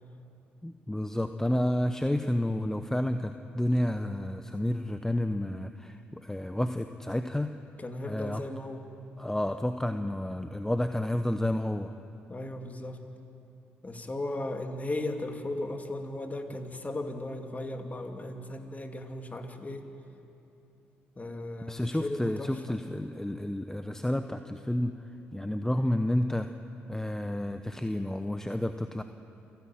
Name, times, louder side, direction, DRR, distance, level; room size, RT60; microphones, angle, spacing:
voice 1, 0.6-7.6 8.0-8.4 9.2-11.9 21.7-25.0 25.3-26.5 26.9-29.0, left 1 dB, 10° left, 8 dB, 0.9 m, -30 dB
voice 2, 7.8-8.9 12.3-13.0 13.8-19.9 21.2-22.8, left 1 dB, 30° left, 4 dB, 2.6 m, -36 dB
28.0 x 10.5 x 8.9 m, 2.8 s
hypercardioid pair, 50°, 6 cm